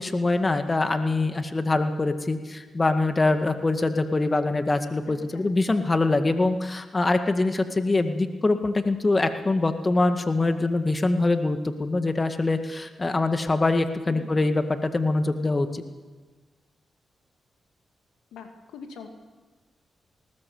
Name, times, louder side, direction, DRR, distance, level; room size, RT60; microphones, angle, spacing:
voice 1, 0.0-15.8, left 2 dB, 35° left, 7 dB, 1.9 m, -24 dB
voice 2, 5.1-5.5 14.1-14.4 18.3-19.1, left 6 dB, 90° left, 4 dB, 2.6 m, -43 dB
19.5 x 19.5 x 7.9 m, 1.4 s
supercardioid pair, 45°, 0 cm